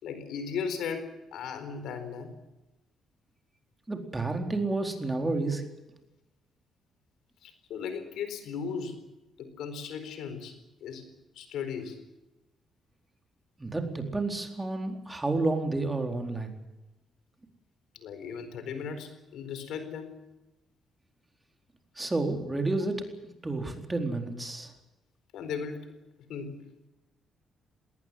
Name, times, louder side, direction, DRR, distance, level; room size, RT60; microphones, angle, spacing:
voice 1, 0.0-2.3 7.4-9.0 9.4-10.5 10.8-11.0 11.3-12.0 17.9-20.2 25.3-25.9 26.3-26.5, left 6 dB, 80° left, 10 dB, 4.3 m, -36 dB
voice 2, 3.9-5.6 13.6-16.5 22.0-23.0 23.4-24.7, right 2 dB, 15° right, 4 dB, 4.2 m, -30 dB
20.5 x 18.5 x 9.9 m, 1.0 s
cardioid pair, 90°, 0 cm